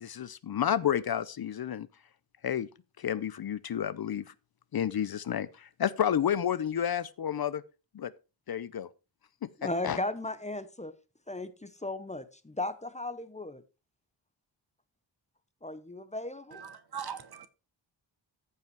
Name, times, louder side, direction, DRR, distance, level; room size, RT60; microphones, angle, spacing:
voice 1, 0.0-1.9 2.4-2.7 3.0-4.3 4.7-7.6 7.9-8.1 8.5-8.9 9.8-10.0, left 9 dB, 55° left, 0.5 m, -30 dB
voice 2, 9.6-10.9 11.3-13.6 15.6-16.6, left 2 dB, 15° left, 0.7 m, -36 dB
voice 3, 16.5-17.5, right 7 dB, 55° right, 1.2 m, -40 dB
14.0 x 5.6 x 4.6 m
wide cardioid pair, 180°, 46 cm